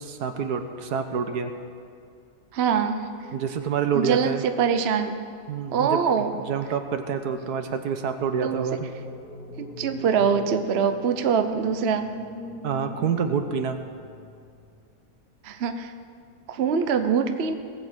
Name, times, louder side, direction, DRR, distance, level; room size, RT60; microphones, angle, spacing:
voice 1, 0.0-1.5 3.3-4.4 5.5-6.0 6.3-8.9 12.6-13.8, right 6 dB, 75° right, 7 dB, 1.4 m, -27 dB
voice 2, 2.5-3.1 3.9-5.1 5.7-6.3 8.4-8.6 9.6-12.1 15.4-15.9 16.5-17.5, right 7 dB, 50° right, 8 dB, 0.8 m, -24 dB
sound 1, 8.5-14.7, left 3 dB, 70° left, 2.1 m, -42 dB
19.0 x 7.7 x 6.2 m, 2.4 s
omnidirectional pair, 1.7 m